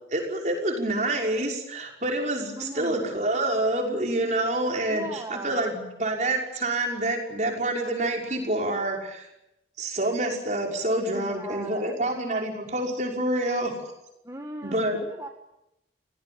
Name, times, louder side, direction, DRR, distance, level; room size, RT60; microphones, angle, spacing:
voice 1, 0.1-9.3 9.8-13.7 14.6-15.0, right 1 dB, 45° right, 1 dB, 5.8 m, -27 dB
voice 2, 2.6-3.1 4.8-5.6 11.1-11.9 14.2-15.3, right 1 dB, 20° right, 3 dB, 1.6 m, -38 dB
28.0 x 18.5 x 8.8 m, 0.88 s
head